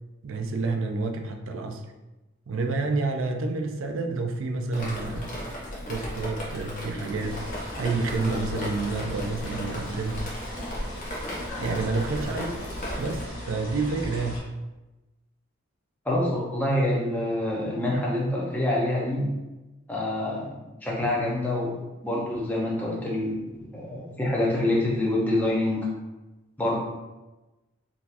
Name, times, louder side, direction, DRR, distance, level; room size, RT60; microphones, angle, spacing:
voice 1, 0.2-1.9 2.5-5.4 5.9-10.3 11.6-12.6 13.0-14.5, right 3 dB, 70° right, 5 dB, 0.4 m, -29 dB
Drip, 4.7-13.2, equal, 40° left, 0.8 m, -36 dB
sound 1, 7.2-14.4, left 1 dB, 65° left, 1.0 m, -37 dB
voice 2, 16.0-19.3 19.9-20.5 20.8-23.4 23.7-25.9 26.6-26.8, left 1 dB, 10° left, -5 dB, 0.7 m, -26 dB
3.8 x 2.8 x 2.5 m, 1.1 s
head